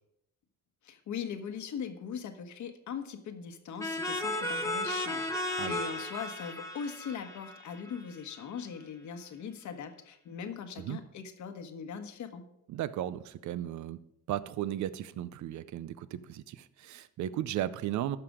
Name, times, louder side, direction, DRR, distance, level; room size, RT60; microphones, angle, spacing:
voice 1, 0.8-12.4, left 6 dB, 70° left, 7 dB, 1.4 m, -40 dB
sound 1, 3.8-8.4, left 1 dB, 10° left, 1.4 m, -35 dB
voice 2, 12.7-14.0 14.3-18.2, right 12 dB, 70° right, 16 dB, 0.7 m, -35 dB
13.5 x 6.0 x 5.0 m, 0.80 s
cardioid pair, 90°, 30 cm